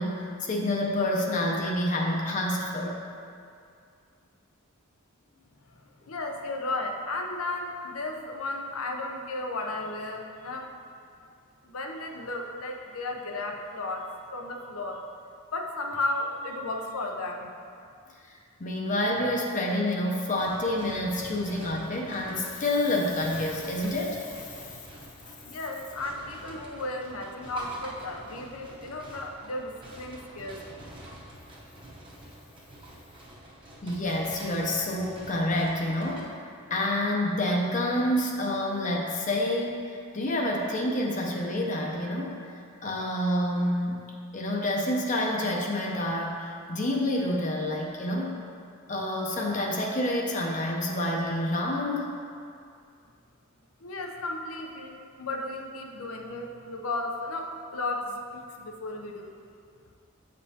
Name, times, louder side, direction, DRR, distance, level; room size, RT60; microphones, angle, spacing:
voice 1, 0.0-3.0 18.3-24.5 33.8-44.0 44.3-48.4 48.9-52.1 58.6-58.7, left 1 dB, 35° left, -1 dB, 0.6 m, -28 dB
voice 2, 6.1-10.7 11.6-15.0 15.5-17.5 25.4-30.8 53.8-59.3, left 2 dB, 85° left, 3 dB, 0.6 m, -34 dB
sound 1, 20.3-36.2, right 1 dB, 25° right, 0.8 m, -46 dB
8.1 x 5.2 x 2.8 m, 2.4 s
head